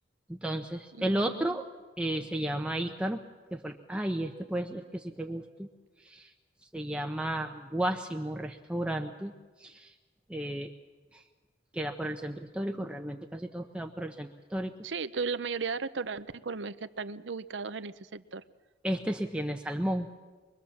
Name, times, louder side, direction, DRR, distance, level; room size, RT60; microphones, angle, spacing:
voice 1, 0.3-1.7 2.0-3.2 3.5-5.7 6.0-6.3 6.7-9.3 9.6-9.9 10.3-10.7 11.1-11.2 11.7-14.7 18.8-20.1, right 1 dB, 5° right, 3 dB, 0.8 m, -33 dB
voice 2, 0.9-1.6 14.8-18.4, right 4 dB, 85° right, 12 dB, 0.8 m, -36 dB
23.5 x 23.0 x 7.2 m, 1.3 s
head